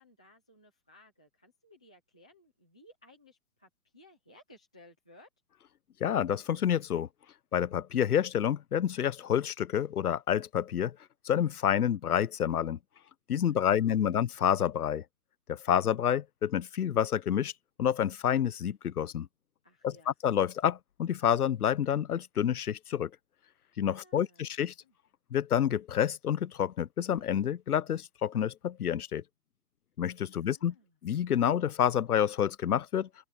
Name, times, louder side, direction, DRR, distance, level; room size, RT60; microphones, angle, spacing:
voice 1, 0.0-5.3 13.5-14.2 19.6-20.1 23.9-24.4 24.8-24.9 30.3-30.9, left 1 dB, 5° left, 0.6 m, -59 dB
voice 2, 6.0-7.1 7.5-11.0 11.2-12.8 13.3-15.0 15.5-17.5 17.8-19.3 19.8-23.1 23.8-24.7 25.3-29.2 30.0-30.7 31.0-33.1, left 9 dB, 85° left, 0.9 m, -28 dB
open air
hypercardioid pair, 170°, 44 cm